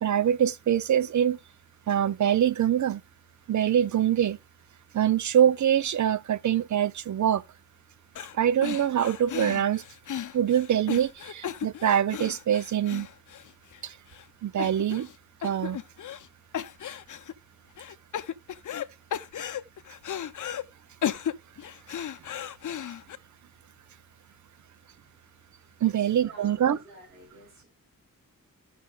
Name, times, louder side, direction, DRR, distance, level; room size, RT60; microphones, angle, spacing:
voice 1, 0.0-1.4 1.9-3.0 3.5-4.4 4.9-7.4 8.3-9.8 10.3-13.1 13.8-14.0 14.4-15.1 15.4-15.8 25.8-26.8, right 10 dB, 55° right, 0.4 m, -24 dB
sound 1, 8.2-8.4 8.6-13.8 14.1-14.2 14.6-15.2 15.4-16.3 16.5-17.3 17.8-18.9 19.1-20.6 21.0-23.2, left 9 dB, 60° left, 0.7 m, -35 dB
voice 2, 25.8-27.7, right 1 dB, 35° right, 4.7 m, -51 dB
14.5 x 6.0 x 2.3 m
wide cardioid pair, 175°, 35 cm